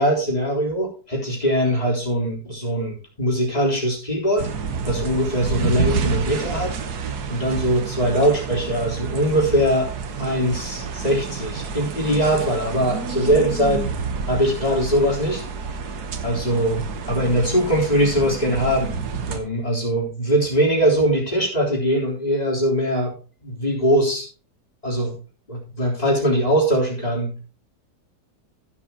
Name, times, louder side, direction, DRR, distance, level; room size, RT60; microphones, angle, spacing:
voice 1, 0.0-4.5 4.8-6.8 7.3-9.9 10.2-13.9 14.3-15.4 16.2-19.0 19.3-23.1 23.4-24.3 24.8-25.2 25.5-27.3, equal, 25° left, -3 dB, 3.8 m, -21 dB
sound 1, 4.4-19.4, right 5 dB, 80° right, 1.7 m, -29 dB
15.0 x 7.3 x 2.9 m, 0.36 s
omnidirectional pair, 1.7 m